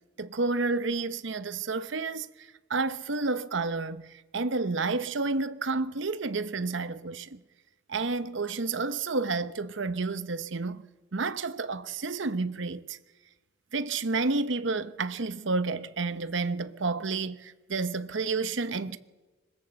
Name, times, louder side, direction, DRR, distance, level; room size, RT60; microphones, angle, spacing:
voice 1, 0.2-2.3 2.7-4.0 4.3-7.4 7.9-10.8 11.1-13.0 13.7-19.0, right 3 dB, 65° right, 0.9 m, -30 dB
25.5 x 21.0 x 7.7 m
head